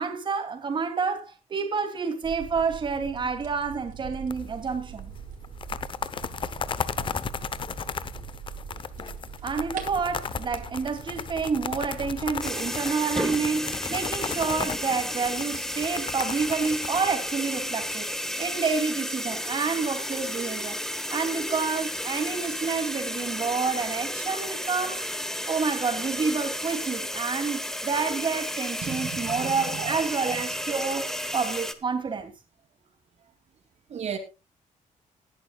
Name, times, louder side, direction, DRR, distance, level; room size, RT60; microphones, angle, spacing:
voice 1, 0.0-5.1 9.4-18.1 18.4-20.8 21.1-25.0 25.5-32.3, right 5 dB, 35° right, 2.7 m, -29 dB
sound 1, 2.2-12.4, right 6 dB, 85° right, 3.9 m, -42 dB
sound 2, 4.3-4.7 5.0-5.1 5.4-17.9, left 6 dB, 35° left, 0.8 m, -35 dB
sound 3, 12.4-31.7, equal, 5° left, 1.2 m, -32 dB
voice 2, 28.8-30.0 30.3-30.4 31.0-31.3 33.9-34.2, right 8 dB, 55° right, 2.6 m, -35 dB
19.5 x 11.0 x 2.3 m
cardioid pair, 150°, 14 cm